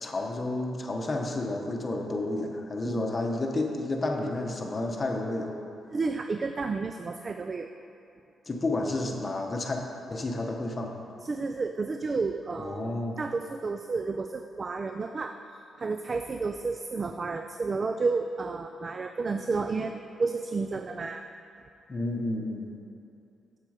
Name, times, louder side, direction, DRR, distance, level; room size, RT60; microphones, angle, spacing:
voice 1, 0.0-5.6 8.5-9.8 10.1-10.9 12.6-13.2 21.9-22.8, left 2 dB, 30° left, 2 dB, 1.0 m, -31 dB
voice 2, 5.9-7.7 11.2-12.9 13.2-21.3, right 4 dB, 35° right, 7 dB, 0.3 m, -31 dB
7.5 x 7.4 x 5.0 m, 2.7 s
cardioid pair, 100°, 0 cm